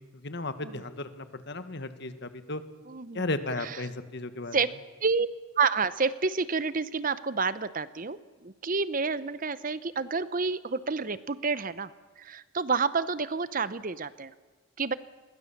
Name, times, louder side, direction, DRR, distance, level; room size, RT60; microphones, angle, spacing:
voice 1, 0.2-2.6 3.1-4.5, left 2 dB, 50° left, 10 dB, 1.6 m, -34 dB
voice 2, 2.9-3.2 3.6-3.8 4.5-4.7 5.0-5.3 5.6-11.9 12.2-14.3 14.8-14.9, right 4 dB, 40° right, 15 dB, 0.7 m, -29 dB
29.0 x 22.0 x 7.2 m, 1.4 s
head